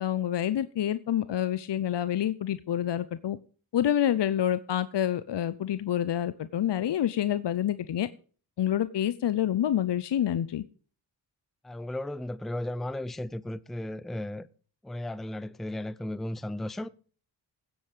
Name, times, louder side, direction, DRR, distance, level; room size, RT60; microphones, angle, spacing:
voice 1, 0.0-3.4 3.7-8.1 8.6-10.6, left 11 dB, 60° left, 0.7 m, -27 dB
voice 2, 11.6-14.5 14.8-16.9, left 1 dB, ahead, 0.6 m, -35 dB
16.0 x 7.9 x 5.0 m
cardioid pair, 60°, 47 cm